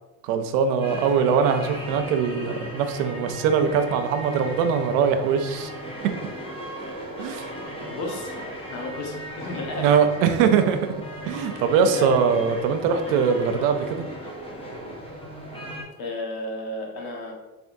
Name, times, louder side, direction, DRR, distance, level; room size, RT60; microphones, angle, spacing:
voice 1, 0.2-5.7 7.2-7.5 9.8-10.9 11.2-14.1, right 6 dB, 90° right, 7 dB, 0.6 m, -22 dB
sound 1, 0.8-15.8, equal, 15° left, 0.8 m, -37 dB
voice 2, 7.9-9.9 11.8-12.1 16.0-17.3, left 1 dB, 65° left, 0 dB, 1.2 m, -33 dB
3.8 x 3.5 x 2.6 m, 1.1 s
supercardioid pair, 110°, 41 cm